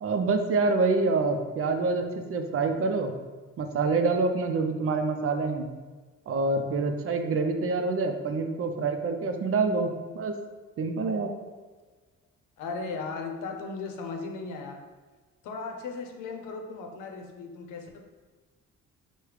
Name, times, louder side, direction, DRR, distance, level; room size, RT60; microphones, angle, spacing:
voice 1, 0.0-2.0 2.3-3.1 3.6-5.7 6.3-10.3 10.8-11.3, right 3 dB, 50° right, 5 dB, 0.6 m, -26 dB
voice 2, 12.6-14.8 15.4-18.1, left 4 dB, 90° left, 3 dB, 0.7 m, -36 dB
4.8 x 2.3 x 4.7 m, 1.3 s
cardioid pair, 90°, 30 cm